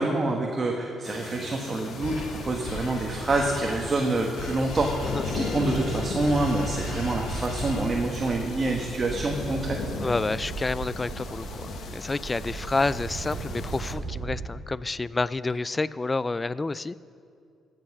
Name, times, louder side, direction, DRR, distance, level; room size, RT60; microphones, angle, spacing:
voice 1, 0.0-9.8, right 2 dB, 35° right, 1 dB, 1.2 m, -27 dB
sound 1, 1.0-13.9, left 4 dB, 65° left, 1.2 m, -38 dB
sound 2, 2.0-8.3, left 2 dB, 85° left, 2.0 m, -35 dB
sound 3, 7.0-14.5, right 4 dB, 70° right, 2.2 m, -38 dB
voice 2, 10.0-17.0, left 3 dB, 25° left, 18 dB, 0.3 m, -29 dB
14.5 x 7.8 x 6.0 m, 2.4 s
cardioid pair, 90°, 0 cm